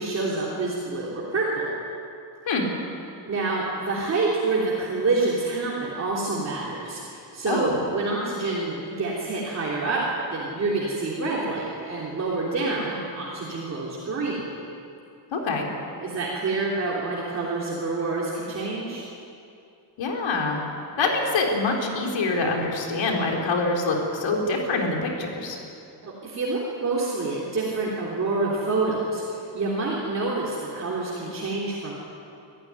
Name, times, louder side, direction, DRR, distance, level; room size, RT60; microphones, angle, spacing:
voice 1, 0.0-1.7 3.3-10.0 10.3-14.4 16.0-19.1 26.0-31.9, right 3 dB, 35° right, -5 dB, 3.4 m, -27 dB
voice 2, 7.5-7.8 15.3-15.6 20.0-20.6 21.0-25.6, left 3 dB, 90° left, 0 dB, 4.0 m, -25 dB
25.5 x 14.5 x 9.6 m, 2.6 s
wide cardioid pair, 180°, 43 cm